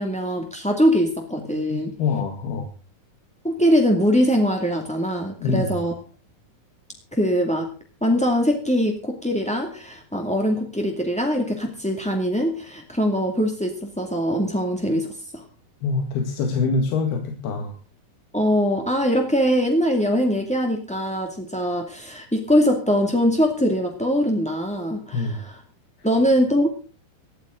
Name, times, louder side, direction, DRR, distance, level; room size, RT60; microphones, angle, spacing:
voice 1, 0.0-1.9 3.4-5.9 7.1-7.7 8.0-15.1 15.3-15.4 18.3-25.6 26.0-26.7, equal, 5° left, 1 dB, 1.0 m, -22 dB
voice 2, 1.7-2.7 5.4-5.8 15.8-17.8 25.1-25.4, left 4 dB, 85° left, 4 dB, 3.9 m, -25 dB
19.5 x 14.0 x 3.8 m, 0.37 s
omnidirectional pair, 4.4 m